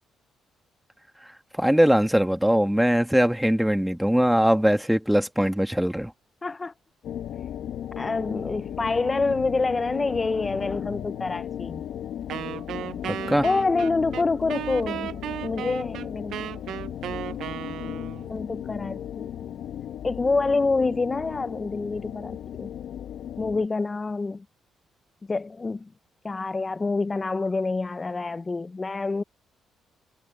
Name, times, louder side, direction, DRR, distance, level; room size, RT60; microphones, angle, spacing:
voice 1, 1.6-6.1 13.1-13.4, equal, 5° right, 1.8 m, -21 dB
voice 2, 6.4-6.7 8.0-11.8 13.4-16.4 18.3-19.6 20.0-22.7 23.4-24.4 25.3-25.9 26.2-29.2, left 3 dB, 25° left, 0.5 m, -27 dB
sound 1, 7.0-23.7, left 10 dB, 75° left, 1.3 m, -36 dB
Wind instrument woodwind instrument, 12.3-18.3, right 11 dB, 75° right, 0.6 m, -35 dB
cardioid pair, 90°, 0 cm